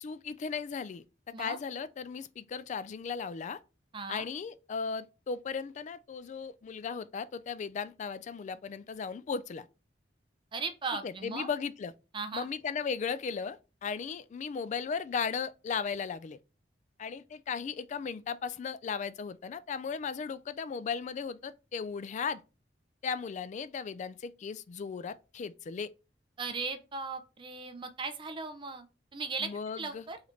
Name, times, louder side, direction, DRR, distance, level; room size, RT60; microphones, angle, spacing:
voice 1, 0.0-1.0 1.4-3.6 4.1-9.7 11.0-11.9 12.3-16.4 17.0-22.4 23.0-25.9 29.4-30.1, left 6 dB, 40° left, 0.3 m, -36 dB
voice 2, 3.9-4.2 10.5-11.5 12.1-12.5 26.4-28.9 29.1-29.5 29.8-30.2, right 4 dB, 30° right, 0.5 m, -37 dB
3.9 x 3.1 x 3.1 m
head